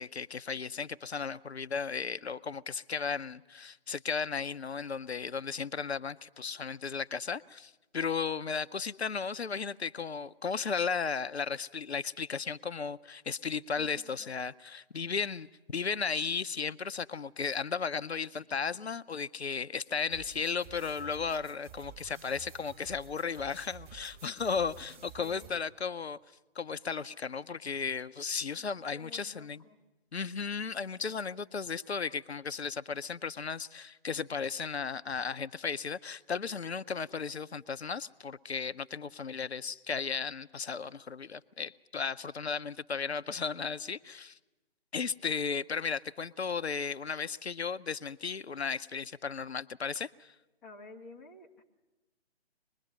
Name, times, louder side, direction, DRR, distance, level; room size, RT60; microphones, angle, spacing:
voice 1, 0.0-26.2 26.6-29.6 30.1-44.4 44.9-50.3, left 5 dB, 75° left, 0.7 m, -35 dB
voice 2, 13.8-14.3 25.2-25.5 28.5-29.8 50.6-51.6, left 3 dB, 5° left, 0.7 m, -52 dB
sound 1, 20.1-25.6, right 7 dB, 20° right, 3.0 m, -52 dB
24.5 x 21.0 x 6.7 m
figure-of-eight pair, 140°, 32 cm